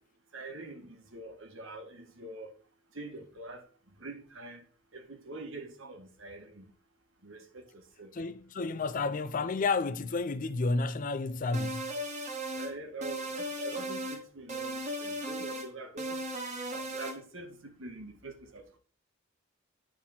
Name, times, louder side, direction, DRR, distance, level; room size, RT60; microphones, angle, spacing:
voice 1, 0.3-2.5 2.9-3.7 4.0-4.7 4.9-6.7 7.2-8.1 12.5-16.3 16.7-18.8, right 2 dB, 65° right, 1.7 m, -44 dB
voice 2, 8.1-11.9, left 3 dB, 40° left, 0.4 m, -31 dB
sound 1, 11.5-12.7 13.0-14.2 14.5-15.7 16.0-17.2, right 1 dB, 35° right, 1.4 m, -36 dB
10.0 x 4.2 x 5.7 m
head